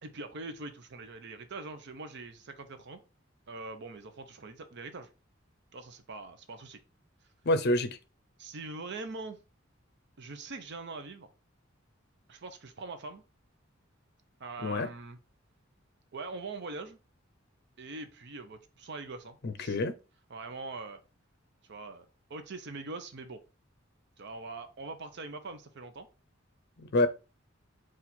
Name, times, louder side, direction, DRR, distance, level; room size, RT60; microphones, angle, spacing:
voice 1, 0.0-3.0 3.5-5.1 5.7-6.8 8.4-9.4 10.2-11.3 12.3-13.2 14.4-15.2 16.1-17.0 17.8-19.8 20.3-21.0 21.7-22.0 22.3-23.4 24.2-26.1, right 3 dB, 60° right, 0.7 m, -42 dB
voice 2, 7.4-8.0 14.6-14.9 19.4-19.9 26.8-27.1, left 2 dB, 55° left, 0.5 m, -27 dB
4.3 x 2.5 x 4.2 m
head